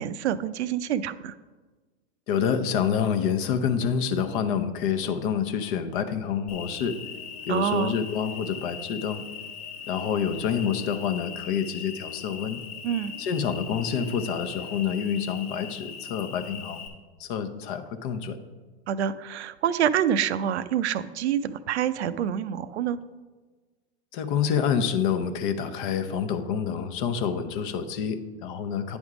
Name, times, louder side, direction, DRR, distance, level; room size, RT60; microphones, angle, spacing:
voice 1, 0.0-1.3 7.5-7.9 12.8-13.1 18.9-23.0, right 9 dB, 75° right, 14 dB, 0.5 m, -27 dB
voice 2, 2.3-7.0 7.5-9.2 9.9-12.6 13.2-16.9 17.2-18.4 24.1-29.0, left 7 dB, 50° left, 9 dB, 0.8 m, -27 dB
Cricket, 6.5-16.9, left 6 dB, 70° left, 1.3 m, -39 dB
9.6 x 3.6 x 4.9 m, 1.3 s
hypercardioid pair, 110°, 33 cm